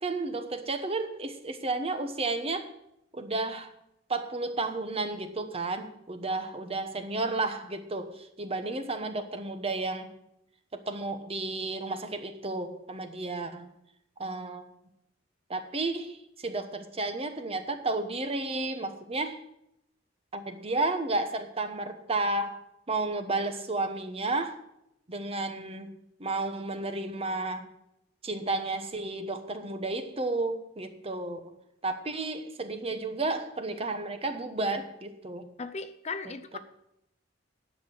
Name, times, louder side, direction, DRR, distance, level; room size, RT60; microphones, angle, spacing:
voice 1, 0.0-2.7 3.1-3.7 4.1-10.1 10.7-13.7 14.2-14.7 15.5-19.4 20.3-22.6 22.9-24.6 25.1-25.9 26.2-27.7 28.2-31.6 31.8-35.5 36.2-36.6, right 2 dB, 30° right, 8 dB, 1.1 m, -32 dB
voice 2, 35.6-36.6, left 4 dB, 35° left, 11 dB, 0.5 m, -37 dB
10.5 x 6.6 x 7.9 m, 0.80 s
head